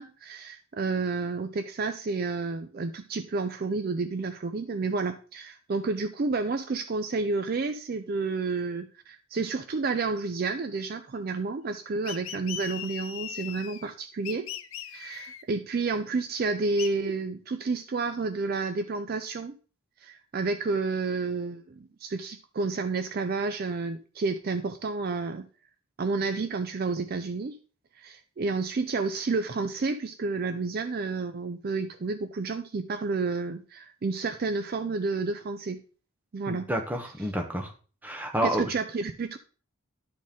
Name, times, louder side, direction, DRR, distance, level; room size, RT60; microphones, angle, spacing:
voice 1, 0.0-14.5 14.9-19.6 20.0-25.5 26.0-27.6 28.0-35.8 36.3-36.7 38.4-39.4, right 3 dB, 45° right, 9 dB, 0.4 m, -30 dB
sound 1, 12.0-13.9 14.2-15.4 16.8-16.9, left 10 dB, 70° left, 0.6 m, -39 dB
voice 2, 36.5-37.7 38.0-38.6, equal, 10° right, 3 dB, 0.9 m, -29 dB
12.0 x 4.2 x 3.6 m, 0.38 s
head